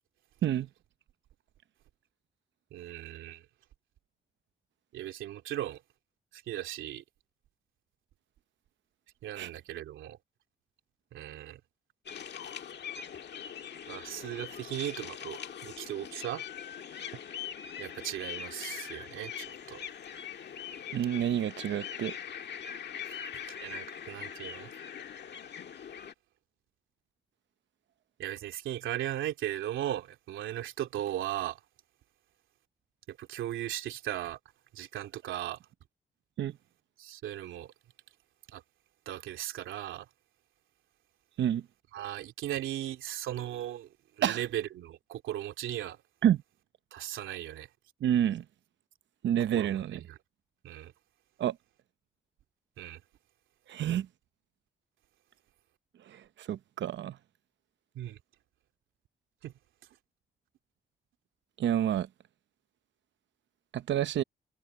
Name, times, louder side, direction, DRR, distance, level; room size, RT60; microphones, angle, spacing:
voice 1, 2.7-3.4 4.9-5.8 6.3-7.0 9.2-10.2 11.1-11.6 13.9-15.4 15.6-16.4 17.8-19.8 23.1-23.2 23.6-24.7 28.2-31.6 33.1-34.4 34.7-35.6 37.0-37.7 38.5-38.6 39.1-40.0 41.9-43.9 44.2-46.0 46.9-47.7 49.5-50.2 50.6-50.9 52.8-53.0 57.9-58.2 59.4-59.5, right 12 dB, 85° right, 2.9 m, -37 dB
sound 1, 12.1-26.1, left 8 dB, 60° left, 1.7 m, -42 dB
voice 2, 20.9-22.2 36.4-36.5 41.4-41.6 44.2-44.4 46.2-46.4 48.0-48.4 49.2-50.0 51.4-51.6 53.7-54.1 56.1-57.2 61.6-62.1 63.7-64.2, right 10 dB, 70° right, 0.8 m, -28 dB
cardioid pair, 65°, 20 cm